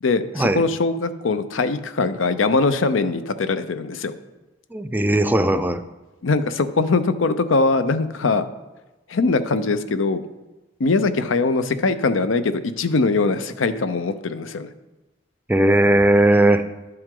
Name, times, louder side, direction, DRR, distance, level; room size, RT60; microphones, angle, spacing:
voice 1, 0.0-4.1 6.2-8.5 9.1-10.2 10.8-14.7, left 3 dB, 85° left, 12 dB, 0.6 m, -21 dB
voice 2, 4.7-5.8 15.5-16.6, right 1 dB, 10° right, 10 dB, 0.4 m, -17 dB
11.0 x 7.8 x 3.8 m, 1.1 s
head